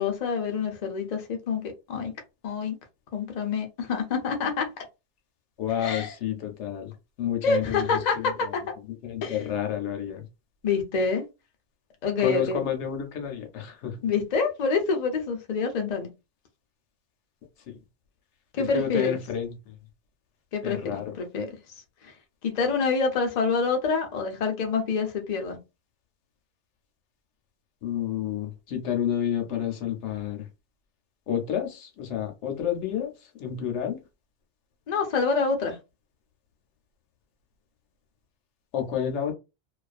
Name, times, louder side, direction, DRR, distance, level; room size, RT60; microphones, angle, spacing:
voice 1, 0.0-1.6 1.9-2.1 2.4-2.7 3.1-4.8 5.8-6.1 7.4-8.6 9.2-9.5 10.6-11.2 12.0-12.6 14.0-16.1 18.5-19.2 20.5-21.5 22.0-22.1 22.4-25.6 34.9-35.8, left 5 dB, 50° left, 0.5 m, -27 dB
voice 2, 5.6-6.9 7.2-7.9 8.2-8.3 9.0-10.2 12.2-14.0 17.7-17.8 18.6-19.5 20.6-21.1 27.8-30.5 31.3-34.0 38.7-39.3, left 9 dB, 75° left, 0.9 m, -30 dB
2.4 x 2.3 x 2.4 m
omnidirectional pair, 1.2 m